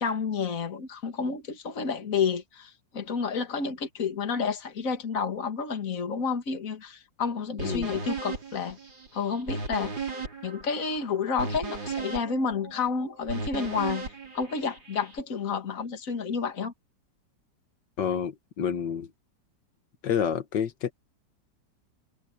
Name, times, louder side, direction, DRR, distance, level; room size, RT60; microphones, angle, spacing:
voice 1, 0.0-8.8 9.1-9.9 10.4-14.1 14.3-16.7, left 5 dB, 45° left, 2.4 m, -30 dB
voice 2, 7.6-8.0 18.0-19.1 20.0-20.9, left 8 dB, 70° left, 2.0 m, -29 dB
sound 1, 7.6-15.2, right 4 dB, 90° right, 5.3 m, -36 dB
omnidirectional pair, 2.0 m